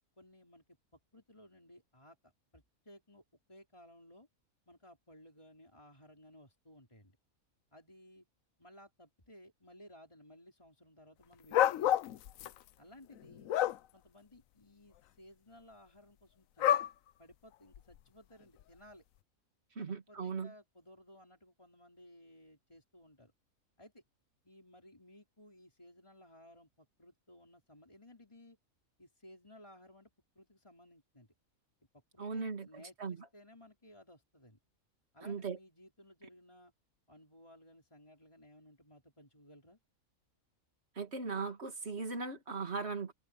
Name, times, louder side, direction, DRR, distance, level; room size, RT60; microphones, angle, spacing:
voice 1, 0.2-0.6 1.1-3.2 3.5-4.3 4.7-7.2 7.7-8.2 8.6-12.2 12.8-13.5 13.9-16.8 17.2-19.0 19.8-23.3 23.8-24.0 24.4-28.6 29.0-30.1 30.3-31.3 32.1-34.6 35.1-36.7 37.1-39.8, left 1 dB, 20° left, 4.8 m, -59 dB
sound 1, 11.5-12.5 13.2-13.8 16.6-16.9 17.7-17.8, left 12 dB, 75° left, 1.0 m, -28 dB
voice 2, 19.8-20.5 32.2-32.7 33.0-33.3 35.2-35.6 41.0-43.1, right 4 dB, 50° right, 2.5 m, -38 dB
omnidirectional pair, 1.5 m